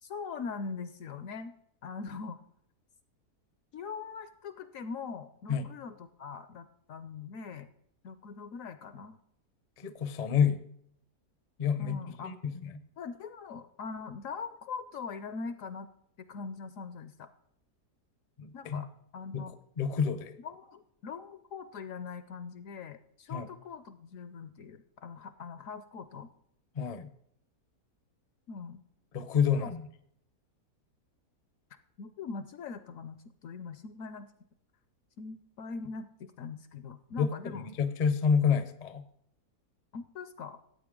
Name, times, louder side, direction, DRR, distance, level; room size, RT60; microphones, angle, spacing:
voice 1, 0.0-1.5 1.8-2.4 3.7-7.7 8.0-9.2 11.8-12.3 13.0-15.9 16.2-17.3 18.5-19.6 20.4-26.3 28.5-28.8 29.5-29.7 32.0-34.3 35.2-37.7 39.9-40.6, left 5 dB, 70° left, 12 dB, 0.8 m, -42 dB
voice 2, 9.8-10.6 11.6-12.8 18.4-18.8 19.3-19.4 19.8-20.4 23.3-23.5 26.7-27.1 29.1-29.9 37.2-39.0, left 7 dB, 50° left, 11 dB, 0.5 m, -29 dB
14.5 x 8.5 x 3.7 m, 0.71 s
omnidirectional pair, 1.7 m